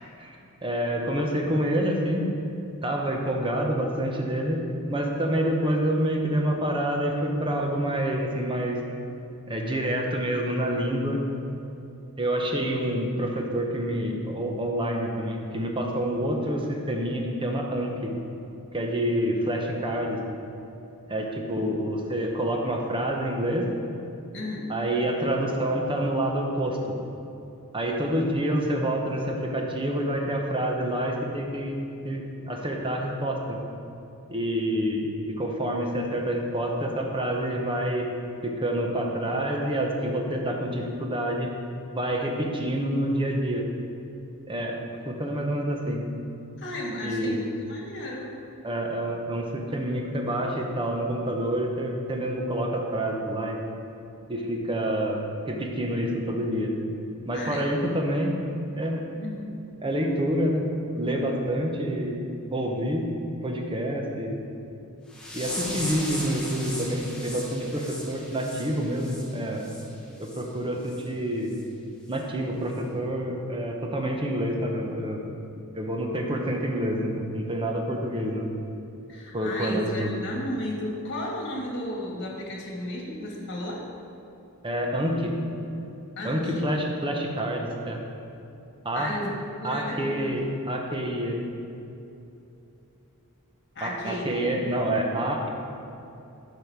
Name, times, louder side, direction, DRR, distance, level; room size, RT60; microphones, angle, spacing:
voice 1, 0.6-2.3 2.8-8.8 9.5-11.2 12.2-18.1 18.7-20.2 21.1-23.7 24.7-26.9 27.7-33.6 34.3-38.1 38.4-41.5 41.9-43.7 44.5-44.8 45.1-46.0 47.0-47.4 48.6-53.6 54.3-55.2 55.5-56.7 57.3-58.3 58.7-59.0 59.8-60.6 60.9-62.2 62.5-63.1 63.4-64.4 65.3-69.6 70.2-71.5 72.1-75.2 75.7-78.4 79.3-80.2 84.6-85.4 86.2-88.0 88.8-89.1 89.6-91.5 93.8-95.5, right 1 dB, 25° right, 1 dB, 0.9 m, -27 dB
voice 2, 24.3-24.7 46.6-48.4 57.3-57.7 59.2-59.5 79.1-83.9 86.2-86.7 88.9-89.3 89.6-90.4 93.7-94.7, left 1 dB, 55° left, -1 dB, 1.7 m, -34 dB
sound 1, 65.1-69.8 70.2-70.4 70.9-71.0 71.5-71.6 72.1-72.2, left 1 dB, 5° left, 1.1 m, -37 dB
9.7 x 5.3 x 4.7 m, 2.8 s
head